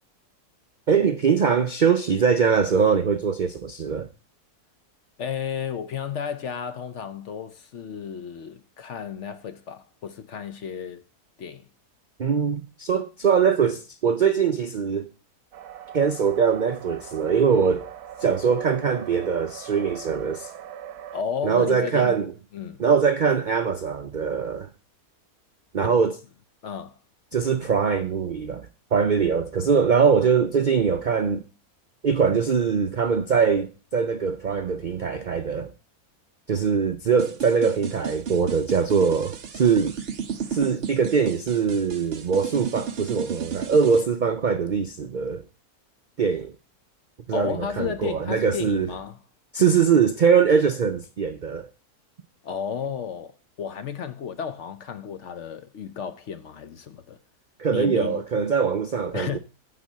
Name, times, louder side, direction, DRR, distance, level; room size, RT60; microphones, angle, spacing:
voice 1, 0.9-4.1 12.2-15.1 15.9-17.9 18.2-20.5 21.4-22.3 22.8-24.7 25.7-26.2 27.3-31.4 32.0-35.7 36.5-39.9 40.5-45.4 46.2-46.5 47.3-48.9 49.5-51.7 57.6-59.4, right 6 dB, 65° right, 0.4 m, -22 dB
voice 2, 5.2-11.0 11.4-11.7 21.1-22.2 22.5-22.8 25.8-25.9 26.6-27.0 47.3-49.2 52.4-57.2 57.7-58.2 59.1-59.4, left 7 dB, 60° left, 0.8 m, -33 dB
sound 1, 15.5-21.2, right 10 dB, 85° right, 1.3 m, -41 dB
sound 2, 37.2-44.0, right 7 dB, 50° right, 0.9 m, -33 dB
9.7 x 4.2 x 7.2 m
omnidirectional pair, 1.6 m